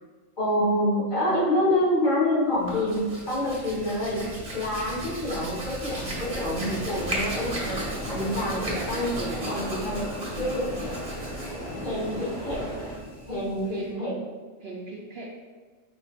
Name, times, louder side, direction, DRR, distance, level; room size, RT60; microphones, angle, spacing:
voice 1, 0.4-4.2 4.5-7.8 8.1-9.1 9.5-10.1 10.4-10.7 11.8-12.6 13.3-14.1, left 1 dB, 35° left, -8 dB, 1.5 m, -27 dB
Hands, 2.5-13.9, right 1 dB, 35° right, 1.1 m, -36 dB
sound 1, 6.1-13.0, equal, 5° left, 0.7 m, -38 dB
sound 2, 7.0-12.2, left 2 dB, 80° left, 1.3 m, -42 dB
voice 2, 8.6-9.5 13.7-14.1 14.6-15.2, right 2 dB, 60° right, -2 dB, 0.7 m, -37 dB
4.8 x 4.3 x 2.4 m, 1.4 s
omnidirectional pair, 1.3 m